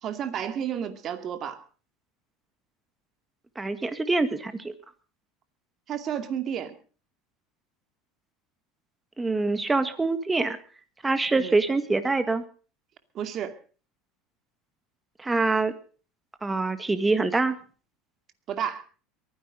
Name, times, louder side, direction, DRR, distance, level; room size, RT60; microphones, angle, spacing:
voice 1, 0.0-1.6 5.9-6.7 11.4-11.6 13.1-13.5 18.5-18.8, right 9 dB, 40° right, 8 dB, 2.3 m, -31 dB
voice 2, 3.6-4.7 9.2-10.6 11.0-12.4 15.2-15.7 16.4-17.6, right 3 dB, 15° right, 10 dB, 1.8 m, -25 dB
22.5 x 10.5 x 5.2 m, 0.39 s
supercardioid pair, 130°, 0 cm